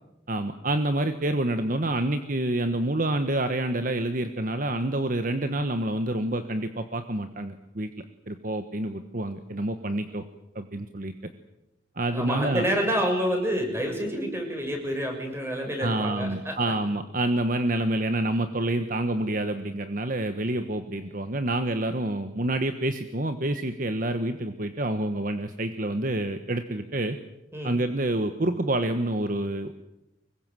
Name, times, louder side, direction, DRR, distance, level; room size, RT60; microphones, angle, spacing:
voice 1, 0.3-7.9 8.3-10.2 10.5-11.1 12.0-12.6 15.8-27.2 27.6-29.8, right 1 dB, 45° right, 8 dB, 1.3 m, -28 dB
voice 2, 12.1-16.5 27.5-27.8, equal, 15° right, 3 dB, 6.4 m, -28 dB
25.0 x 22.5 x 7.6 m, 0.92 s
head